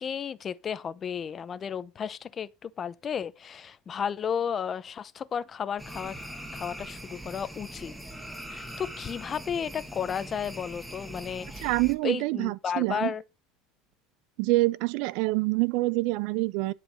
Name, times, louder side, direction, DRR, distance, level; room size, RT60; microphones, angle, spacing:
voice 1, 0.0-6.2 6.5-7.9 8.5-11.7 12.0-13.2, left 7 dB, 30° left, 0.7 m, -33 dB
sound 1, 5.8-11.9, right 1 dB, 5° right, 1.7 m, -41 dB
voice 2, 11.6-13.1 14.4-16.7, right 21 dB, 70° right, 0.6 m, -26 dB
11.0 x 4.8 x 6.4 m
supercardioid pair, 120°, 0 cm